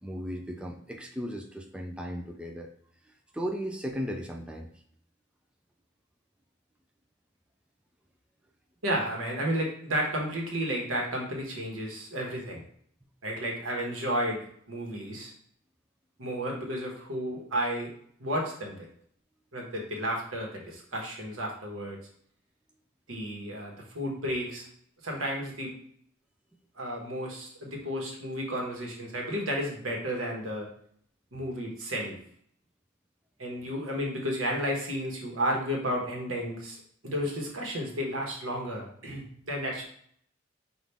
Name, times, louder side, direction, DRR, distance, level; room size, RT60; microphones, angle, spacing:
voice 1, 0.0-2.7 3.3-4.7, equal, 5° right, 3 dB, 0.3 m, -36 dB
voice 2, 8.8-12.6 13.2-15.3 16.2-17.9 18.2-18.9 19.5-22.0 23.1-24.6 25.0-25.7 26.8-30.7 31.3-32.2 33.4-36.8 37.0-39.8, equal, 90° right, -1 dB, 1.1 m, -32 dB
5.5 x 2.4 x 3.3 m, 0.65 s
head